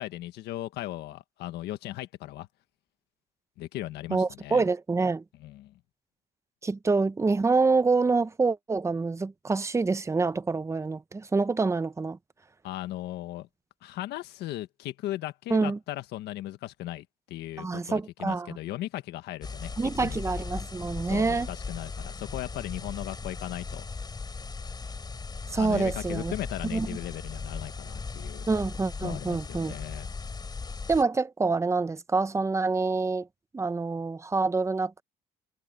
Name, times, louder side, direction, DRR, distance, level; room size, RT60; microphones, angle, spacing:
voice 1, 0.0-2.5 3.6-4.6 5.4-5.7 12.6-13.5 13.8-19.7 20.0-20.2 21.0-23.8 25.6-28.5 29.0-30.1, left 15 dB, 80° left, 1.5 m, -37 dB
voice 2, 4.1-5.2 6.6-12.2 15.5-15.8 17.6-18.6 19.8-21.5 25.5-26.3 26.7-27.0 28.5-29.7 30.9-33.3 33.5-35.0, right 4 dB, 15° right, 0.8 m, -26 dB
sound 1, 19.4-31.0, left 4 dB, 25° left, 3.8 m, -38 dB
cardioid pair, 110°, 17 cm